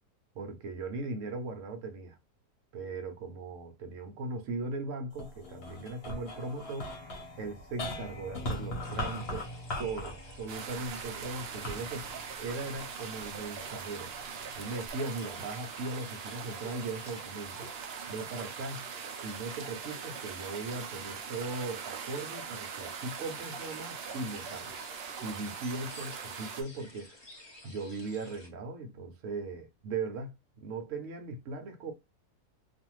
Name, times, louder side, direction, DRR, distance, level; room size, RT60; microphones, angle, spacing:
voice 1, 0.3-2.2 2.7-7.0 7.4-9.5 9.8-12.1 12.4-14.1 14.6-17.7 18.1-18.9 19.2-24.8 25.2-27.1 27.6-30.3 30.6-31.9, right 3 dB, 65° right, 0.9 m, -38 dB
sound 1, 5.1-13.6 14.2-14.9, left 1 dB, 45° left, 1.0 m, -40 dB
sound 2, 8.8-28.5, left 1 dB, 30° left, 0.5 m, -54 dB
sound 3, 10.5-26.6, right 6 dB, 80° right, 0.5 m, -41 dB
2.6 x 2.5 x 3.0 m
omnidirectional pair, 1.7 m